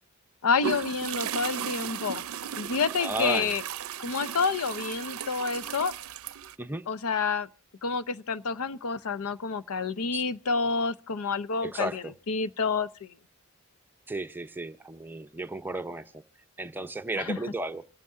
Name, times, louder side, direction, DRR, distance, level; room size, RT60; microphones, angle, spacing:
voice 1, 0.4-2.2 2.6-3.6 4.0-5.9 6.9-7.5 7.8-13.1 17.1-17.4, left 4 dB, 80° left, 0.6 m, -29 dB
sound 1, 0.6-6.5, right 8 dB, 75° right, 0.5 m, -36 dB
voice 2, 3.0-3.5 6.6-6.8 10.1-10.2 11.7-11.9 14.1-16.0 16.6-17.8, right 1 dB, 10° right, 0.6 m, -33 dB
27.0 x 9.3 x 2.5 m
head